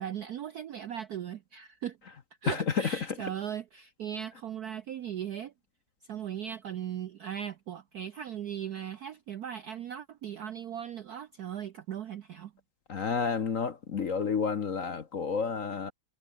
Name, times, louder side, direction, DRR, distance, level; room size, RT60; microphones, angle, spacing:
voice 1, 0.0-2.0 2.4-5.5 6.1-12.5, right 9 dB, 70° right, 0.9 m, -38 dB
voice 2, 12.9-15.9, left 5 dB, 45° left, 1.2 m, -30 dB
omnidirectional pair, 2.4 m